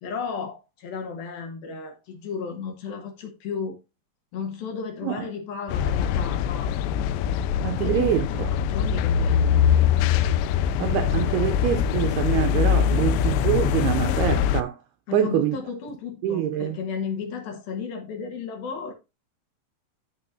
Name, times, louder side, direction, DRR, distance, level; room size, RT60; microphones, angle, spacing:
voice 1, 0.0-3.8 4.3-6.7 7.8-8.2 8.5-9.9 15.1-18.9, left 6 dB, 65° left, 2.7 m, -34 dB
sound 1, 5.7-14.6, left 8 dB, 85° left, 2.8 m, -23 dB
voice 2, 7.6-8.5 10.8-14.8 15.1-15.6 16.2-16.8, right 11 dB, 80° right, 2.3 m, -25 dB
14.0 x 4.8 x 2.6 m
omnidirectional pair, 5.1 m